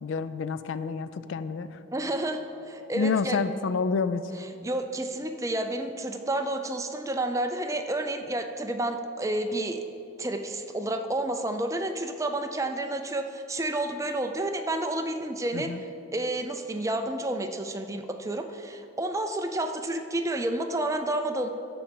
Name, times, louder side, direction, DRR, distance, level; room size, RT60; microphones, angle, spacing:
voice 1, 0.0-1.8 2.9-4.3 15.5-15.8, left 5 dB, 70° left, 13 dB, 0.4 m, -29 dB
voice 2, 1.9-3.4 4.6-9.8 10.2-15.7 16.1-21.5, right 1 dB, 15° right, 6 dB, 0.5 m, -30 dB
10.5 x 4.3 x 7.6 m, 2.9 s
head